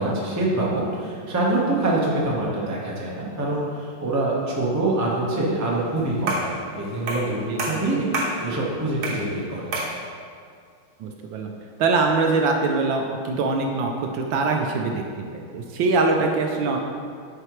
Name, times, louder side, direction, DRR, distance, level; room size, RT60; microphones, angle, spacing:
voice 1, 0.0-8.1 8.4-9.7, right 2 dB, 15° right, -5 dB, 0.5 m, -25 dB
sound 1, 6.3-6.6 7.1-7.3 7.6-8.4 9.0-9.3 9.7-10.0, right 2 dB, 55° right, 1.4 m, -27 dB
voice 2, 7.5-8.1 11.0-11.5 11.8-15.0 15.3-16.8, right 3 dB, 75° right, 2 dB, 1.2 m, -23 dB
9.7 x 4.8 x 3.1 m, 2.2 s
omnidirectional pair, 2.3 m